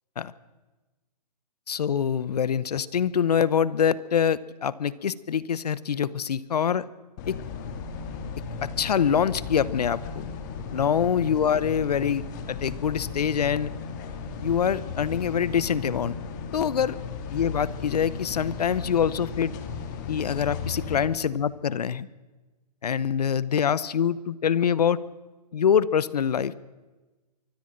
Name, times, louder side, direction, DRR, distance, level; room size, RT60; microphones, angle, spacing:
voice 1, 1.7-6.8 7.3-7.4 8.6-10.3 10.7-13.7 14.4-16.2 16.5-17.0 17.3-19.5 20.1-22.1 22.8-25.0 25.5-26.5, left 8 dB, 70° left, 19 dB, 1.0 m, -25 dB
sound 1, 7.2-21.1, left 5 dB, 25° left, 2.2 m, -36 dB
24.0 x 13.0 x 8.9 m, 1.2 s
hypercardioid pair, 165°, 21 cm